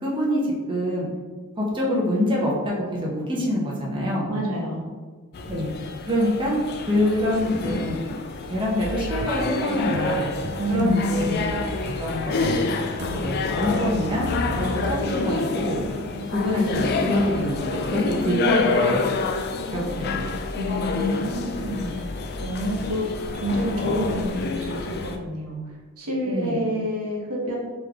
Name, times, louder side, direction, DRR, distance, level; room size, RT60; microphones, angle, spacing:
voice 1, 0.0-1.1 1.6-4.3 5.5-5.7 6.1-6.6 6.9-8.0 8.5-10.3 10.7-11.7 12.0-12.6 13.2-14.3 14.6-15.8 16.3-19.0 19.7-20.1 26.2-26.6, left 1 dB, 25° right, -4 dB, 0.8 m, -25 dB
voice 2, 4.3-4.9 10.6-11.2 20.6-21.9 22.4-23.0 23.4-25.6 26.0-27.6, equal, 85° right, -2 dB, 1.0 m, -28 dB
sound 1, 5.3-25.2, left 3 dB, 45° left, 0.3 m, -28 dB
sound 2, 9.2-15.0, right 1 dB, 50° right, 0.4 m, -34 dB
3.6 x 3.1 x 3.6 m, 1.4 s
head